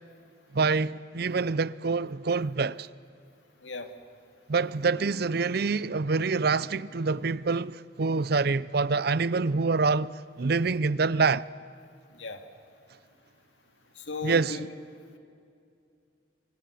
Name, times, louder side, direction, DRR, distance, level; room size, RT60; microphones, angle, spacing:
voice 1, 0.5-2.9 4.5-11.4 14.2-14.6, right 4 dB, 55° right, 0.6 m, -26 dB
voice 2, 14.0-14.7 15.1-15.2, left 4 dB, 80° left, 2.3 m, -36 dB
25.5 x 23.5 x 8.4 m
head